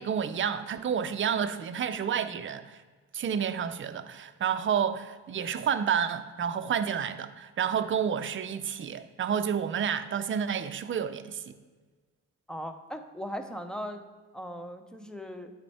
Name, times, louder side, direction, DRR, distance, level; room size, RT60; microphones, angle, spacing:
voice 1, 0.0-2.8 3.1-11.5, right 8 dB, 40° right, 10 dB, 0.6 m, -30 dB
voice 2, 12.5-14.0 14.3-15.5, equal, 5° left, 7 dB, 0.7 m, -38 dB
9.7 x 4.4 x 4.3 m, 1.4 s
cardioid pair, 90°, 30 cm